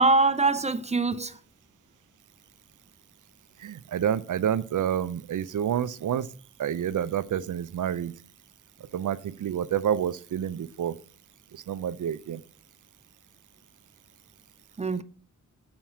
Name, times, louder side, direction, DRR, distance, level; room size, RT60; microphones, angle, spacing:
voice 1, 0.0-1.3 14.8-15.0, right 3 dB, 25° right, 0.3 m, -23 dB
voice 2, 3.6-6.3 6.6-8.1 8.9-10.9 11.5-12.4, right 9 dB, 85° right, 0.5 m, -28 dB
7.2 x 4.4 x 6.0 m
wide cardioid pair, 150°, 30 cm